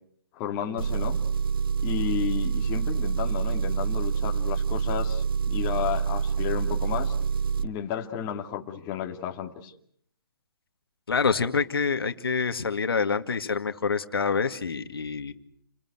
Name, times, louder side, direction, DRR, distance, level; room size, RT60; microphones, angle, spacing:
voice 1, 0.3-1.2 1.8-7.1 7.6-9.7, left 9 dB, 25° left, 3 dB, 2.4 m, -32 dB
Engine, 0.8-7.7, right 6 dB, 65° right, 1.1 m, -27 dB
voice 2, 11.1-15.3, left 5 dB, 75° left, 8 dB, 2.2 m, -26 dB
30.0 x 21.5 x 8.1 m, 0.66 s
hypercardioid pair, 145°, 12 cm